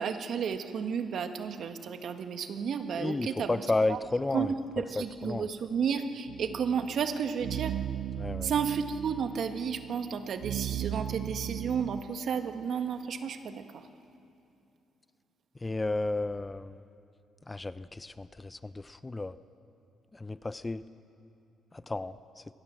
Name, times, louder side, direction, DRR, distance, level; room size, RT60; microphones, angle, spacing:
voice 1, 0.0-3.6 3.9-4.0 4.3-7.7 8.4-13.8, right 6 dB, 65° right, 7 dB, 1.6 m, -32 dB
voice 2, 3.0-4.5 5.0-5.5 8.2-8.5 15.6-16.8 17.5-19.4 20.1-20.8 21.9-22.1, left 2 dB, 20° left, 14 dB, 0.6 m, -32 dB
sound 1, 6.3-12.0, right 10 dB, 80° right, 0.7 m, -37 dB
25.0 x 19.0 x 7.6 m, 2.8 s
cardioid pair, 90°, 0 cm